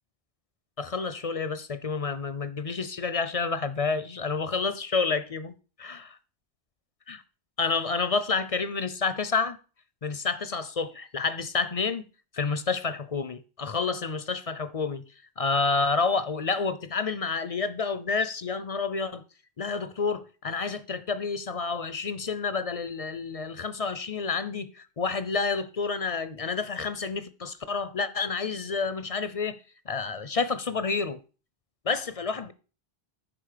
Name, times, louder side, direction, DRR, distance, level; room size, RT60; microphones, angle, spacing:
voice 1, 0.8-5.5 5.8-6.2 7.1-7.2 7.6-9.6 10.0-12.0 12.3-15.0 15.4-19.2 19.6-29.6 29.9-31.2 31.8-32.5, left 4 dB, 40° left, 0.6 m, -29 dB
9.9 x 5.4 x 6.6 m
omnidirectional pair, 1.0 m